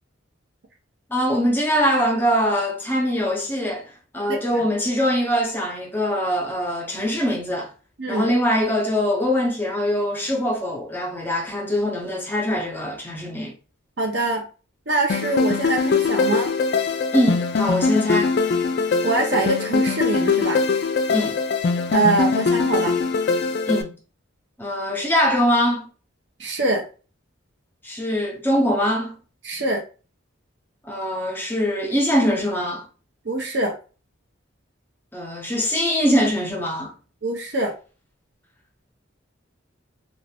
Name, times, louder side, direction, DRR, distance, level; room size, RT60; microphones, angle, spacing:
voice 1, 1.1-7.7 8.1-13.5 17.1-18.3 21.1-21.4 23.7-24.0 24.6-25.9 27.8-29.2 30.8-32.9 35.1-36.9, equal, 10° left, 0.7 m, -22 dB
voice 2, 4.3-4.6 8.0-8.3 14.0-14.4 14.9-16.5 19.0-20.6 21.9-22.9 26.4-26.8 29.4-29.8 33.2-33.7 37.2-37.7, right 2 dB, 60° right, 0.6 m, -24 dB
sound 1, 15.1-23.8, left 4 dB, 50° left, 0.3 m, -22 dB
2.5 x 2.3 x 3.3 m
head